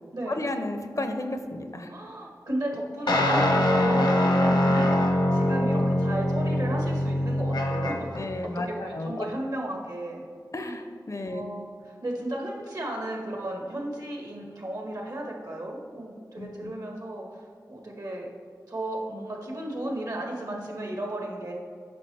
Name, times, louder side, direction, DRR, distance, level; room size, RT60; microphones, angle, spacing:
voice 1, 0.3-1.9 8.2-9.3 10.5-11.4 16.4-16.7, left 2 dB, 50° left, 6 dB, 0.7 m, -33 dB
voice 2, 1.9-4.1 4.4-10.2 10.6-10.8 11.2-11.7 12.0-17.3 17.7-18.3 18.7-21.5, right 1 dB, 60° right, 0 dB, 1.6 m, -34 dB
sound 1, 3.1-8.2, left 1 dB, 80° left, 1.1 m, -23 dB
8.6 x 5.9 x 3.4 m, 2.1 s
cardioid pair, 50°, 7 cm